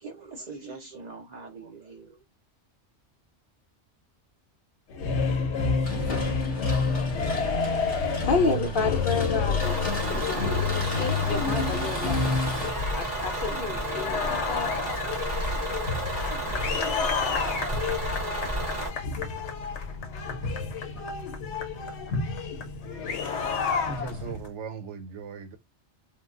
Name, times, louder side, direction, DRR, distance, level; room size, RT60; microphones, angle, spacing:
voice 1, 0.0-2.2, right 3 dB, 55° right, 0.5 m, -42 dB
sound 1, 4.9-24.5, left 4 dB, 80° left, 0.9 m, -29 dB
sound 2, 5.8-12.7, left 1 dB, 35° left, 0.9 m, -37 dB
voice 2, 7.3-7.7 8.2-12.3 12.9-14.7, left 4 dB, 60° left, 0.6 m, -30 dB
Bus / Engine, 9.6-18.9, right 2 dB, 35° right, 1.7 m, -32 dB
voice 3, 23.9-25.6, right 5 dB, 85° right, 0.9 m, -38 dB
3.1 x 2.2 x 2.4 m
omnidirectional pair, 1.2 m